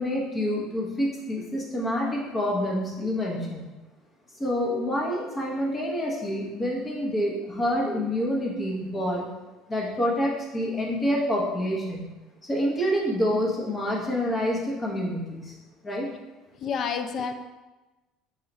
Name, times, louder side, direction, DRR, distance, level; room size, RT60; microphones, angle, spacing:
voice 1, 0.0-3.7 4.4-9.3 9.7-12.0 12.4-15.6 15.8-16.1, equal, 15° left, -3 dB, 0.8 m, -27 dB
voice 2, 16.6-17.3, left 6 dB, 35° left, 7 dB, 0.3 m, -29 dB
4.3 x 2.3 x 3.9 m, 1.1 s
cardioid pair, 160°, 0 cm